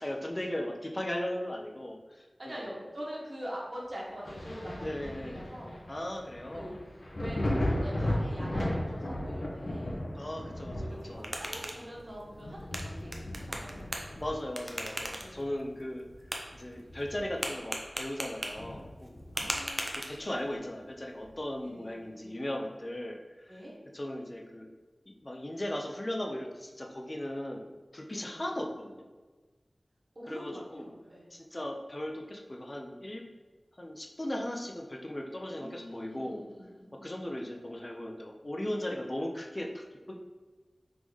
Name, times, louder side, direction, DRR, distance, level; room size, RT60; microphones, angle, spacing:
voice 1, 0.0-2.6 4.8-5.4 5.9-6.8 10.1-11.3 14.2-16.1 16.5-19.1 19.9-23.6 23.9-24.7 25.2-29.1 30.3-30.9 31.3-33.2 33.8-36.5 37.0-40.1, left 1 dB, 35° left, 1 dB, 0.6 m, -37 dB
voice 2, 2.4-5.7 6.5-10.0 10.7-13.1 13.4-14.2 15.2-15.5 19.3-19.8 21.6-22.4 23.5-23.7 28.1-28.4 30.1-31.3 35.6-37.1, equal, 50° right, -4 dB, 1.3 m, -44 dB
Thunder, 4.2-15.6 16.0-17.5 17.8-17.9 18.5-19.8 21.2-21.3, left 1 dB, 80° left, 0.9 m, -36 dB
sound 1, 10.9-20.5, right 1 dB, 30° right, 0.6 m, -40 dB
3.8 x 3.6 x 3.1 m, 1.3 s
wide cardioid pair, 60°, 0 cm